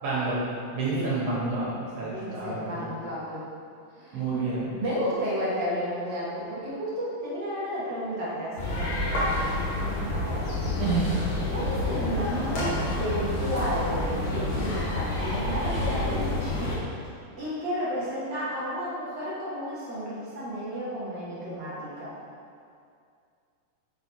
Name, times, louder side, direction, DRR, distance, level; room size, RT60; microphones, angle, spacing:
voice 1, 0.0-0.4 0.7-1.7 2.0-2.9 4.1-4.7 10.8-11.1, right 3 dB, 55° right, -7 dB, 2.3 m, -29 dB
voice 2, 0.9-1.7 1.9-3.4 3.9-4.2 4.7-9.3 9.8-10.5 11.5-16.8 17.4-22.1, equal, 80° right, -9 dB, 1.0 m, -32 dB
sound 1, 8.6-16.8, left 2 dB, 90° left, 1.0 m, -28 dB
5.7 x 4.1 x 4.4 m, 2.3 s
omnidirectional pair, 3.9 m